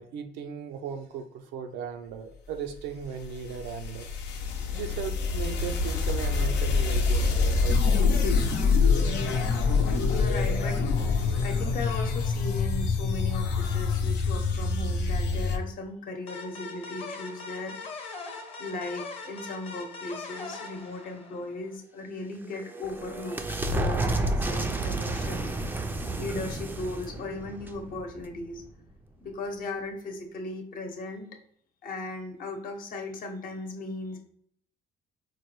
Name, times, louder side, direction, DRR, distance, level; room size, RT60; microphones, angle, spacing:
voice 1, 0.0-4.1 4.7-8.0 8.9-9.2, right 7 dB, 85° right, 7 dB, 0.5 m, -37 dB
sound 1, 2.7-15.6, left 4 dB, 85° left, 0.7 m, -26 dB
voice 2, 9.0-9.6 9.9-18.0 18.6-23.4 23.7-25.5 26.2-28.6 29.2-31.3 31.8-34.2, left 2 dB, 55° left, 3 dB, 0.8 m, -37 dB
sound 2, 16.3-21.7, left 4 dB, 35° left, 0.9 m, -41 dB
sound 3, 22.2-28.7, right 2 dB, 10° right, 0.4 m, -31 dB
4.5 x 2.2 x 3.1 m, 0.66 s
cardioid pair, 110°, 17 cm